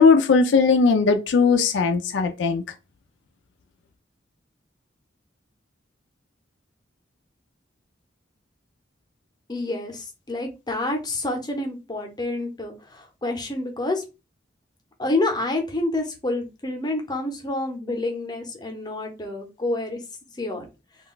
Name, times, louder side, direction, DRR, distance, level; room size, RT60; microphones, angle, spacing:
voice 1, 0.0-2.6, left 4 dB, 80° left, 0.4 m, -18 dB
voice 2, 9.5-14.0 15.0-20.0 20.4-20.6, left 2 dB, 25° left, 0.7 m, -28 dB
2.3 x 2.2 x 3.8 m
head